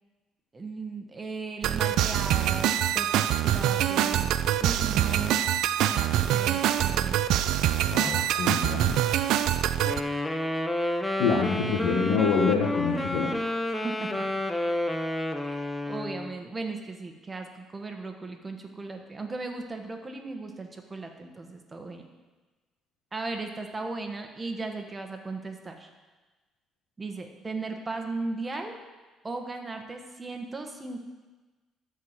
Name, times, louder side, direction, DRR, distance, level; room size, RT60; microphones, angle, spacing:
voice 1, 0.5-4.3 4.6-5.4 5.9-7.2 13.8-14.3 15.9-22.1 23.1-25.9 27.0-28.7 29.2-31.1, right 3 dB, 20° right, 4 dB, 1.3 m, -36 dB
sound 1, 1.6-10.0, right 11 dB, 75° right, 0.4 m, -25 dB
voice 2, 7.9-9.1 11.2-13.5, left 5 dB, 85° left, -3 dB, 1.4 m, -26 dB
Wind instrument woodwind instrument, 9.8-16.3, left 1 dB, 10° left, 0.7 m, -30 dB
12.5 x 4.8 x 7.3 m, 1.3 s
cardioid pair, 115°, 0 cm